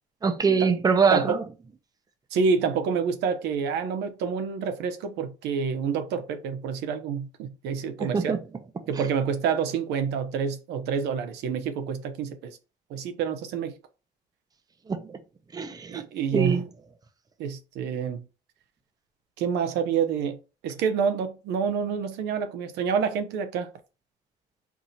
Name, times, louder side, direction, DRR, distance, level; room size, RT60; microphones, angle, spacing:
voice 1, 0.2-1.4 8.0-8.4 14.9-15.0 15.5-16.0 16.3-16.6, right 5 dB, 20° right, 0.7 m, -23 dB
voice 2, 1.1-1.4 2.3-8.4 8.9-12.6 12.9-13.7 15.9-16.6 17.4-18.3 19.4-20.4 20.6-23.7, right 6 dB, 85° right, 0.8 m, -28 dB
4.7 x 2.7 x 4.0 m
cardioid pair, 110°, 17 cm